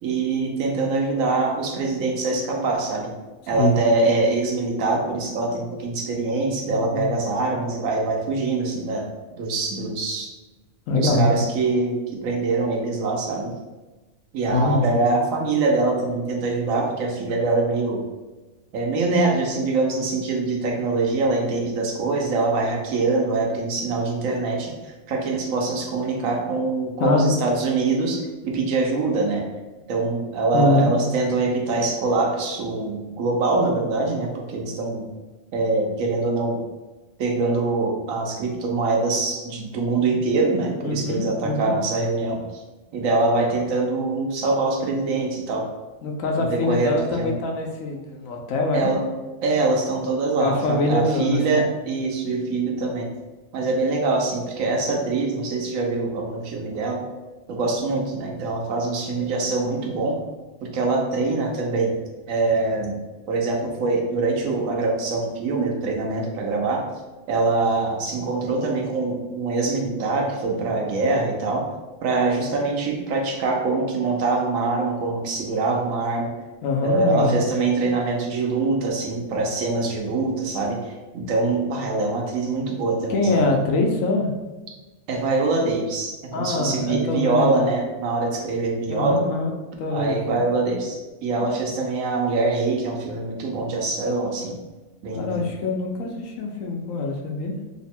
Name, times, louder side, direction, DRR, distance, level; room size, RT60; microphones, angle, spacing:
voice 1, 0.0-3.1 3.5-9.1 9.4-10.3 11.0-13.5 14.3-18.0 18.7-29.5 29.9-35.1 35.5-36.6 37.2-42.6 42.9-45.7 46.4-47.3 48.7-49.0 49.4-53.1 53.5-57.0 57.5-60.2 60.6-62.0 62.3-63.0 63.3-66.8 67.3-71.7 72.0-76.3 76.8-83.4 85.1-89.2 89.9-94.6 95.0-95.4, right 3 dB, 90° right, 0 dB, 1.1 m, -24 dB
voice 2, 6.7-7.2 10.9-11.3 14.5-14.9 27.0-27.4 30.5-30.9 40.0-40.2 40.8-41.7 46.0-48.9 50.4-51.6 70.7-70.9 76.6-77.4 83.1-84.3 86.3-87.7 88.9-90.8 91.4-91.5 95.1-97.5, left 2 dB, 90° left, 1 dB, 1.0 m, -24 dB
3.1 x 2.1 x 4.2 m, 1.2 s
omnidirectional pair, 1.3 m